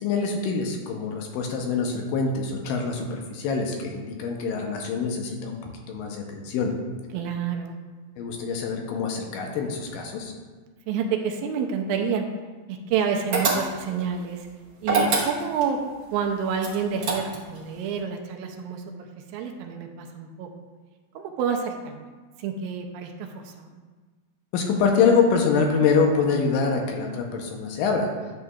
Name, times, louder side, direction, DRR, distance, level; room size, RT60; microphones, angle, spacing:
voice 1, 0.0-5.6 5.9-6.7 8.2-10.3 24.5-28.1, left 5 dB, 80° left, 2 dB, 2.3 m, -25 dB
voice 2, 7.1-7.8 10.9-12.3 12.7-14.5 14.8-15.8 16.1-20.5 21.1-21.9 22.4-23.8, right 6 dB, 85° right, 3 dB, 2.4 m, -28 dB
sound 1, 13.3-14.0 14.8-15.7 16.6-17.6, right 3 dB, 65° right, 1.2 m, -25 dB
10.5 x 6.4 x 2.4 m, 1.4 s
omnidirectional pair, 4.2 m